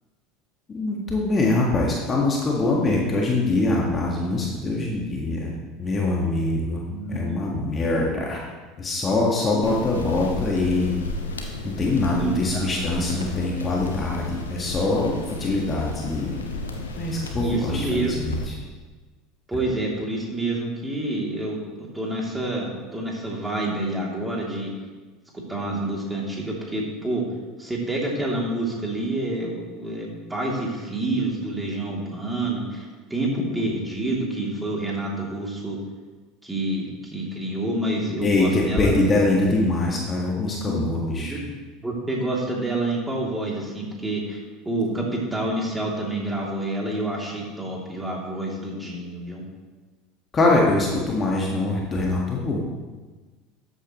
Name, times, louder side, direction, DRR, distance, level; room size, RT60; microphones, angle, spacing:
voice 1, 0.7-5.5 5.8-8.4 8.8-11.0 11.6-16.4 17.0-18.6 38.2-41.4 50.3-52.6, left 2 dB, 30° left, -2 dB, 1.8 m, -23 dB
voice 2, 6.9-7.7 9.5-9.6 12.2-12.7 17.4-18.1 19.5-24.7 25.5-27.2 27.6-35.8 36.4-36.9 37.1-38.9 40.6-40.8 41.2-41.4 41.8-44.4 44.6-49.4, right 2 dB, 10° right, -2 dB, 3.0 m, -28 dB
sound 1, 9.6-18.5, left 2 dB, 85° left, 1.1 m, -33 dB
13.0 x 8.5 x 3.1 m, 1.3 s
figure-of-eight pair, 75°, 0 cm